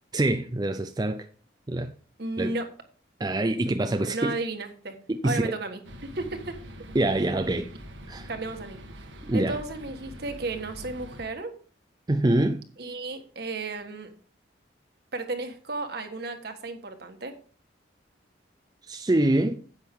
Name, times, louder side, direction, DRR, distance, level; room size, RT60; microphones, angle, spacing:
voice 1, 0.1-1.3 1.7-1.9 2.4-2.5 3.2-4.3 5.1-5.5 6.9-7.7 8.1-8.3 9.2-9.6 12.1-12.6 18.9-19.6, right 1 dB, 20° right, 0.5 m, -25 dB
voice 2, 2.2-2.7 4.0-4.9 5.2-6.5 8.3-8.8 9.3-11.5 12.8-14.1 15.1-17.3, right 2 dB, 60° right, 1.5 m, -33 dB
sound 1, 5.8-11.3, equal, 80° right, 1.5 m, -44 dB
9.9 x 8.1 x 3.6 m
head